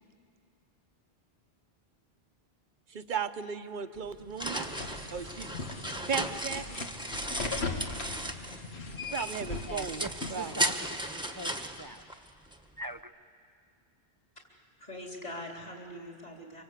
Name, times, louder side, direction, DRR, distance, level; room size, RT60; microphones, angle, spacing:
voice 1, 2.9-4.7 5.1-5.5 6.1-6.9 9.1-10.0 10.3-10.5, right 6 dB, 50° right, 10 dB, 1.0 m, -36 dB
sound 1, 4.0-8.7 9.0-12.6, right 1 dB, 5° right, 1.2 m, -36 dB
sound 2, 4.6-10.7, left 3 dB, 85° left, 1.9 m, -39 dB
voice 2, 9.7-12.0 12.8-13.1, equal, 25° right, 8 dB, 0.5 m, -42 dB
voice 3, 14.4-16.6, left 1 dB, 40° left, 0 dB, 3.7 m, -43 dB
25.0 x 25.0 x 8.3 m, 2.3 s
omnidirectional pair, 1.1 m